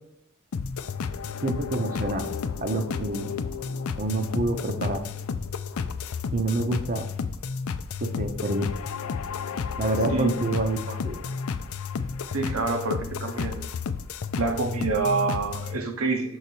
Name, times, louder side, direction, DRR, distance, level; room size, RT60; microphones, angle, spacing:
sound 1, 0.5-15.8, left 5 dB, 80° left, 0.5 m, -32 dB
voice 1, 1.4-2.3 2.6-3.3 4.0-5.1 6.3-7.1 8.0-8.7 9.8-11.2, right 2 dB, 40° right, 6 dB, 0.8 m, -27 dB
voice 2, 10.1-10.4 12.3-13.6 14.4-16.4, right 3 dB, 70° right, 5 dB, 1.0 m, -27 dB
6.5 x 4.0 x 4.5 m, 0.81 s
head